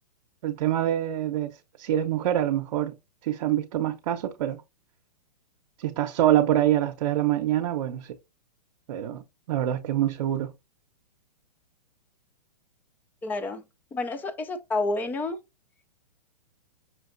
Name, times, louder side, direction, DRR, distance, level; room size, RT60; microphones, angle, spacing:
voice 1, 0.4-1.5 1.8-2.9 3.2-4.6 5.8-8.2 8.9-10.5, right 12 dB, 55° right, 0.7 m, -25 dB
voice 2, 13.2-13.6 13.9-15.4, left 2 dB, 10° left, 0.3 m, -29 dB
5.8 x 2.8 x 2.5 m
hypercardioid pair, 135°, 21 cm